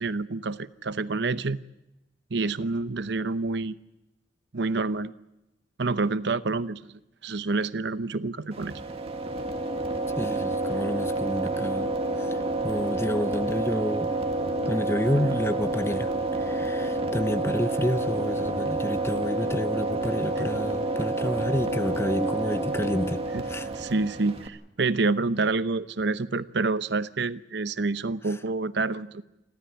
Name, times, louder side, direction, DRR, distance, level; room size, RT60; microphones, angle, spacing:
voice 1, 0.0-1.6 2.3-3.8 4.5-5.1 5.8-6.8 7.2-8.8 20.4-20.5 23.3-29.2, right 3 dB, 70° right, 0.8 m, -28 dB
sound 1, 8.5-24.5, right 2 dB, 35° right, 2.0 m, -29 dB
voice 2, 10.2-11.9 12.2-14.1 14.7-16.1 16.4-23.7, left 1 dB, 15° left, 0.8 m, -29 dB
29.5 x 13.0 x 9.2 m
head